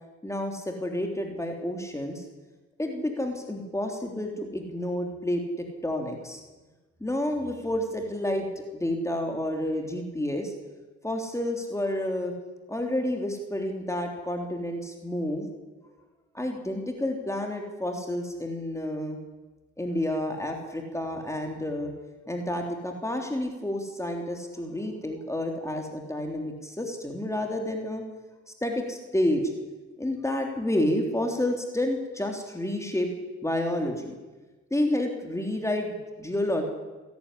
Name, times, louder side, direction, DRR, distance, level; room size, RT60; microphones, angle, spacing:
voice 1, 0.2-2.3 2.8-5.4 5.8-6.4 7.0-10.5 11.0-12.3 12.7-15.5 16.3-19.2 19.8-21.9 22.3-28.0 28.6-29.5 30.0-33.1 33.4-34.1 34.7-36.6, left 1 dB, 10° left, 2 dB, 3.5 m, -30 dB
28.0 x 11.5 x 10.0 m, 1.2 s
cardioid pair, 90°, 30 cm